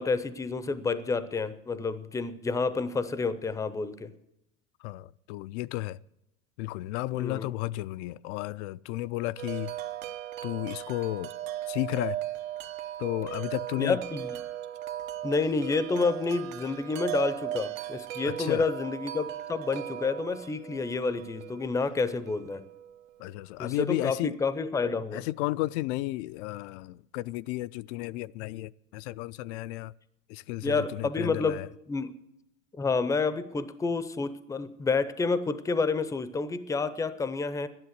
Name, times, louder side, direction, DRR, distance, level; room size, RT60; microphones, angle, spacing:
voice 1, 0.0-4.1 7.1-7.5 13.8-14.3 15.2-22.6 23.6-25.2 30.6-32.1 32.8-37.7, left 4 dB, 10° left, 0.5 m, -29 dB
voice 2, 4.8-6.0 6.6-9.7 10.4-11.3 11.7-12.2 13.0-14.0 18.2-18.7 23.2-24.4 25.1-29.9 30.3-31.7, left 18 dB, 65° left, 0.5 m, -33 dB
Wind chime, 9.4-23.3, right 12 dB, 80° right, 1.0 m, -38 dB
12.0 x 10.5 x 8.0 m
supercardioid pair, 130°, 38 cm